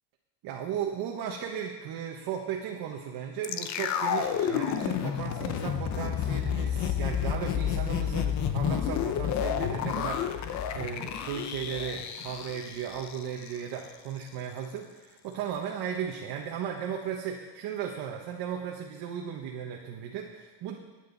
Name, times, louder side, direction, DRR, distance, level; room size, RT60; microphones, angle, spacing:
voice 1, 0.4-20.8, right 8 dB, 60° right, 0 dB, 1.4 m, -36 dB
sound 1, 3.4-13.6 13.8-13.9, left 9 dB, 40° left, 0.7 m, -30 dB
20.0 x 9.3 x 4.1 m, 1.2 s
cardioid pair, 175°, 45 cm